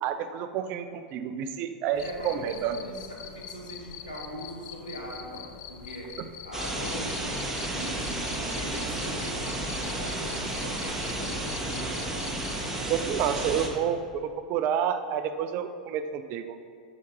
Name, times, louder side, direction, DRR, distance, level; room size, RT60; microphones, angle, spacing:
voice 1, 0.0-2.8 12.9-16.6, right 8 dB, 45° right, 9 dB, 0.5 m, -29 dB
voice 2, 1.9-6.2 6.4-12.3, equal, 85° left, -3 dB, 1.9 m, -41 dB
Cricket, 1.9-12.6, left 9 dB, 45° left, 0.6 m, -44 dB
sound 1, 6.5-13.7, right 1 dB, 10° right, 1.4 m, -32 dB
6.3 x 6.0 x 5.6 m, 2.1 s
figure-of-eight pair, 95°, 4 cm